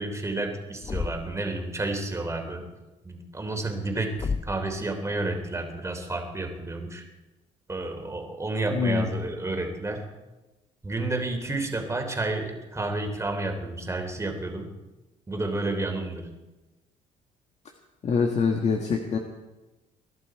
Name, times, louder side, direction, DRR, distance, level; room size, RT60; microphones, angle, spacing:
voice 1, 0.0-2.7 3.0-7.0 7.7-10.1 10.8-14.7 15.3-16.3, right 2 dB, 20° right, 4 dB, 3.1 m, -31 dB
Thump thud, 0.8-1.5 4.2-4.7, left 4 dB, 30° left, 0.8 m, -31 dB
voice 2, 8.7-9.1 18.0-19.2, left 5 dB, 50° left, 3 dB, 1.6 m, -24 dB
22.5 x 11.5 x 4.7 m, 1.1 s
cardioid pair, 95°, 15 cm